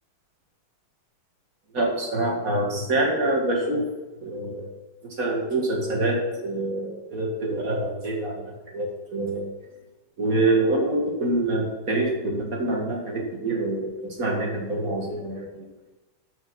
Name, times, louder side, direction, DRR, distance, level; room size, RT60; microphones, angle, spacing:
voice 1, 1.7-3.9 4.2-4.7 5.2-8.4 8.7-9.5 10.2-15.7, right 2 dB, 45° right, 0 dB, 2.5 m, -26 dB
12.0 x 6.9 x 5.8 m, 1.1 s
omnidirectional pair, 2.2 m